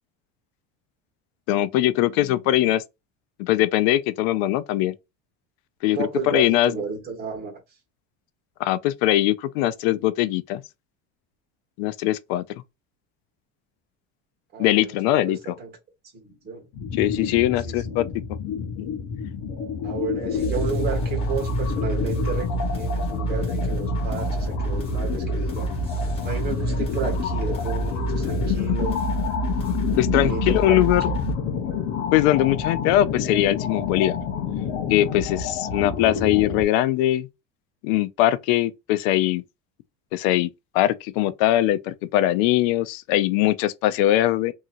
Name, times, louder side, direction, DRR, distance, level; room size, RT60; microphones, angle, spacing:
voice 1, 1.5-2.8 3.4-4.9 5.8-6.7 8.6-10.6 11.8-12.4 14.6-15.5 17.0-18.0 18.8-18.9 30.0-31.0 32.1-34.1 34.9-37.3 37.8-39.4 40.1-40.5 40.7-44.5, left 14 dB, 80° left, 0.5 m, -21 dB
voice 2, 5.8-7.6 14.5-15.7 16.1-16.7 17.6-18.0 19.8-25.7 26.2-29.0 30.0-30.8 31.1-31.2, right 5 dB, 30° right, 1.3 m, -32 dB
sound 1, 16.7-36.6, left 7 dB, 50° left, 0.8 m, -29 dB
sound 2, 20.3-31.3, right 3 dB, 15° left, 1.0 m, -28 dB
2.8 x 2.8 x 2.5 m
cardioid pair, 175°, 32 cm